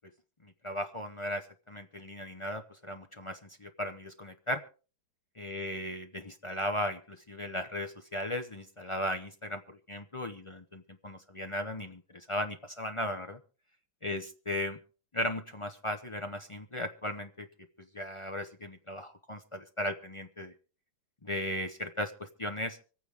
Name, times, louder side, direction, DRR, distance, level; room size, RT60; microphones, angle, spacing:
voice 1, 0.4-4.6 5.4-13.4 14.0-14.8 15.1-17.5 17.9-20.5 21.2-22.8, left 1 dB, 50° left, 5 dB, 0.3 m, -36 dB
25.5 x 9.1 x 3.5 m, 0.36 s
omnidirectional pair, 2.1 m